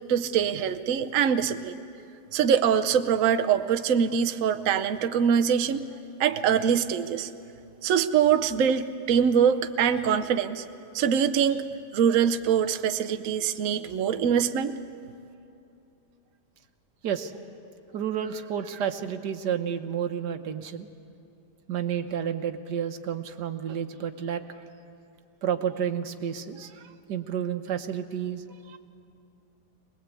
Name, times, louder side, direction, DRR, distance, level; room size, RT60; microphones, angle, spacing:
voice 1, 0.1-1.8 2.3-5.8 6.2-7.3 7.8-10.6 10.9-11.6 11.9-14.8, right 8 dB, 60° right, 9 dB, 1.0 m, -23 dB
voice 2, 17.9-20.9 21.7-24.5 25.4-28.8, right 8 dB, 80° right, 8 dB, 1.6 m, -31 dB
23.0 x 20.0 x 8.3 m, 2.6 s
omnidirectional pair, 1.8 m